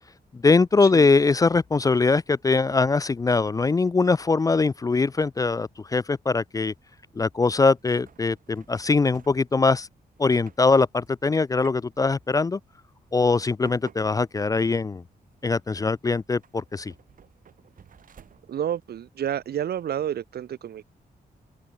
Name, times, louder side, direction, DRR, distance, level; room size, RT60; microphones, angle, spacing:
voice 1, 0.3-6.7 7.2-9.9 10.2-12.6 13.1-15.0 15.4-16.9, left 4 dB, 20° left, 0.5 m, -22 dB
sound 1, 6.6-20.2, right 8 dB, 55° right, 4.1 m, -56 dB
voice 2, 18.5-20.9, right 10 dB, 75° right, 1.3 m, -30 dB
open air
wide cardioid pair, 175°, 16 cm